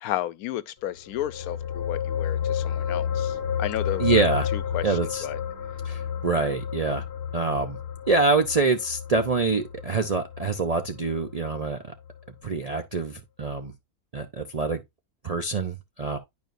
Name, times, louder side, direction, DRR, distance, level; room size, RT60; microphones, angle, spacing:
voice 1, 0.0-4.2 4.5-5.4, left 12 dB, 85° left, 1.1 m, -33 dB
sound 1, 1.0-11.7 12.0-12.2, left 8 dB, 50° left, 1.1 m, -31 dB
voice 2, 4.0-4.5 4.8-5.3 5.8-7.0 7.3-7.8 8.1-11.8 12.4-13.7 14.1-14.8 15.2-16.2, right 3 dB, 50° right, 0.4 m, -25 dB
10.5 x 5.1 x 2.5 m
omnidirectional pair, 1.5 m